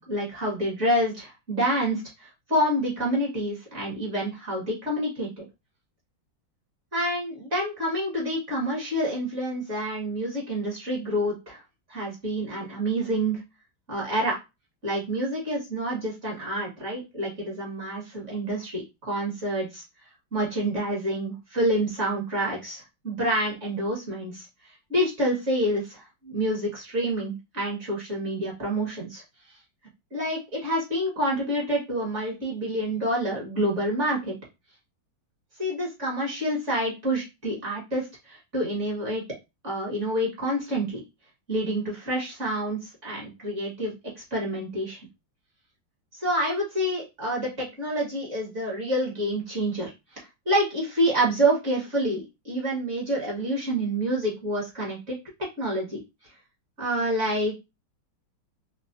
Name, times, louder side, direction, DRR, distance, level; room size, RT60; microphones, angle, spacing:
voice 1, 0.0-5.4 6.9-11.6 11.9-13.4 13.9-14.3 14.8-19.8 20.3-29.2 30.1-34.3 35.6-39.2 39.6-41.0 41.5-43.9 44.3-45.0 46.2-55.2 55.6-56.0 56.8-57.6, right 1 dB, 40° right, -3 dB, 1.8 m, -28 dB
4.0 x 3.2 x 2.7 m, 0.25 s
omnidirectional pair, 2.1 m